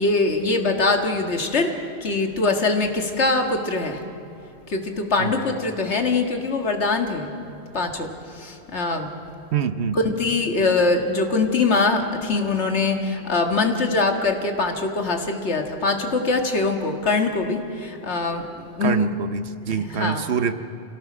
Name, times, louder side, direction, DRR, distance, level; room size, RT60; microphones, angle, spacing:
voice 1, 0.0-4.0 4.7-7.3 7.7-9.1 9.9-19.1 19.6-20.2, left 3 dB, 70° left, 4 dB, 2.0 m, -23 dB
voice 2, 9.5-10.0 18.8-20.5, right 7 dB, 65° right, 11 dB, 1.1 m, -25 dB
27.5 x 17.5 x 6.1 m, 2.8 s
omnidirectional pair, 1.2 m